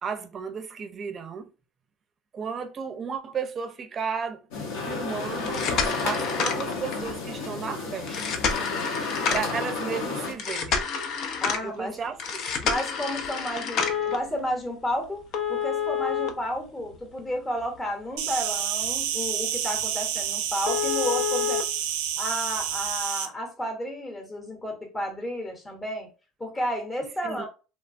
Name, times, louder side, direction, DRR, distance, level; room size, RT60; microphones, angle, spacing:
voice 1, 0.0-1.5 2.3-4.4 4.8-8.3 9.3-10.8 11.6-12.5 27.2-27.5, right 6 dB, 35° right, 0.5 m, -34 dB
sound 1, 4.5-10.3, left 3 dB, 80° left, 0.8 m, -31 dB
sound 2, 5.4-7.1 8.1-9.6 10.4-11.6 12.2-14.2 15.3-17.2 17.6-17.7 18.3-18.4 18.8-19.0 19.2-19.3 19.7-19.8 20.2-20.3 20.6-21.6 22.7-22.8, left 6 dB, 55° left, 0.5 m, -28 dB
voice 2, 11.4-12.0 12.6-21.6 22.2-26.1 26.4-27.5, equal, 20° left, 0.8 m, -32 dB
Insect, 18.2-23.3, right 9 dB, 85° right, 0.4 m, -29 dB
3.1 x 2.1 x 2.5 m
supercardioid pair, 110°, 0 cm